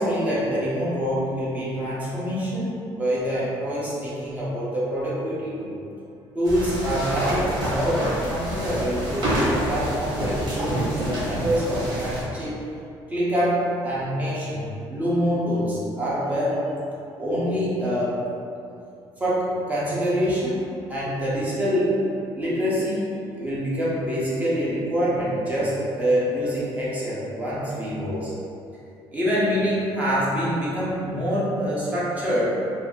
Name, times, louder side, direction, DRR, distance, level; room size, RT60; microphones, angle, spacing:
voice 1, 0.0-5.7 6.3-12.6 13.1-16.6 17.2-18.2 19.2-20.6 20.9-22.0 22.3-23.1 23.3-28.3 29.1-32.6, equal, 15° right, -8 dB, 0.8 m, -25 dB
sound 1, 6.4-12.2, right 1 dB, 50° right, 1.0 m, -27 dB
2.8 x 2.6 x 3.7 m, 2.7 s
cardioid pair, 165°, 9 cm